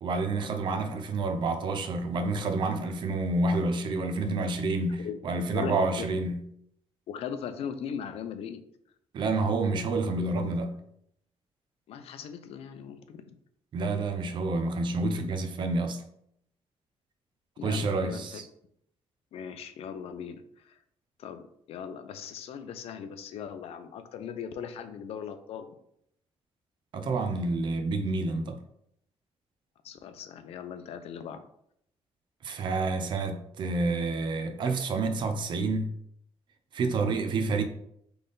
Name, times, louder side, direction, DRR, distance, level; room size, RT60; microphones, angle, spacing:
voice 1, 0.0-6.4 9.1-10.8 13.7-16.0 17.6-18.5 26.9-28.6 32.4-35.9 36.7-37.6, right 3 dB, 45° right, 0.5 m, -29 dB
voice 2, 5.5-6.1 7.1-8.6 11.9-13.4 17.6-18.4 19.3-20.7 21.2-25.7 29.8-31.4, left 7 dB, 70° left, 0.5 m, -39 dB
3.7 x 3.3 x 3.9 m
cardioid pair, 170°, 11 cm